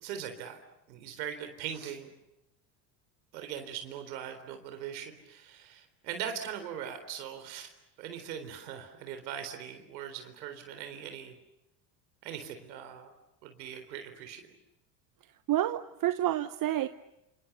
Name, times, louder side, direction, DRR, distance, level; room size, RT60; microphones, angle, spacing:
voice 1, 0.0-0.6 0.9-2.1 3.3-7.7 8.0-11.3 12.2-13.1 13.4-14.5, right 9 dB, 85° right, 7 dB, 4.1 m, -40 dB
voice 2, 15.5-16.9, right 13 dB, 40° right, 12 dB, 1.1 m, -29 dB
28.5 x 28.0 x 6.9 m, 0.88 s
supercardioid pair, 90°, 50 cm